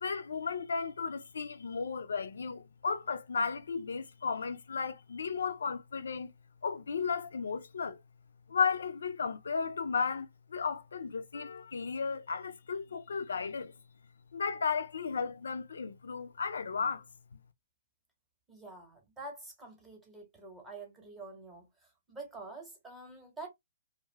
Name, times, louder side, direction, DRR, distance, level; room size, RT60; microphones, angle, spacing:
voice 1, 0.0-6.3 6.6-8.0 8.5-13.7 14.3-17.0, left 5 dB, 80° left, 0.4 m, -34 dB
voice 2, 18.5-21.7 22.1-23.5, right 2 dB, 10° right, 0.9 m, -47 dB
2.6 x 2.3 x 3.2 m
hypercardioid pair, 160°, 0 cm